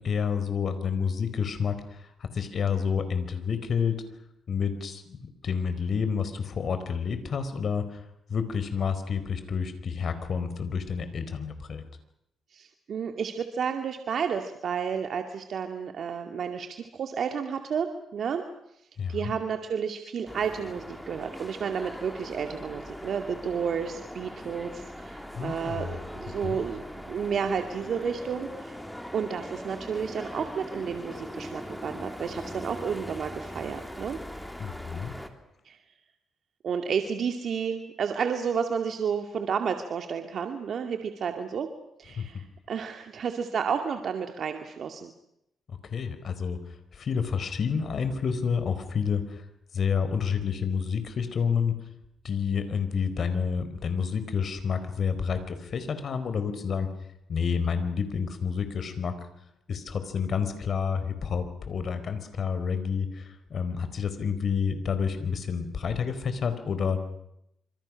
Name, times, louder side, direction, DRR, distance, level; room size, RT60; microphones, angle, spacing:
voice 1, 0.0-4.0 4.5-8.0 8.3-11.8 19.0-19.3 25.3-25.9 26.4-26.6 34.6-35.1 42.2-42.3 45.7-46.6 46.9-49.4 49.7-51.7 52.2-56.9 57.3-59.1 59.7-67.2, left 6 dB, 55° left, 10 dB, 4.6 m, -29 dB
voice 2, 12.5-18.4 19.1-28.8 29.1-34.2 35.6-35.8 36.6-41.7 42.0-45.1, right 7 dB, 60° right, 6 dB, 2.3 m, -31 dB
sound 1, 20.3-35.3, equal, 5° left, 3.4 m, -40 dB
26.5 x 26.5 x 6.4 m, 0.80 s
cardioid pair, 100°, 0 cm